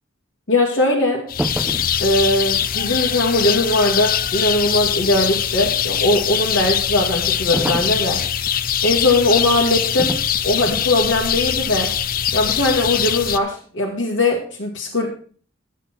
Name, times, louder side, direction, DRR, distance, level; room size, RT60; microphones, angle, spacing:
voice 1, 0.5-1.2 2.0-8.2 8.8-10.1 10.4-11.9 12.3-15.1, left 2 dB, 70° left, -5 dB, 2.0 m, -20 dB
sound 1, 1.3-13.4, left 9 dB, 50° left, 0.5 m, -22 dB
sound 2, 1.4-2.0 7.5-8.1 10.0-10.3 10.7-10.9, equal, 5° right, 0.4 m, -27 dB
12.0 x 8.3 x 4.5 m, 0.43 s
head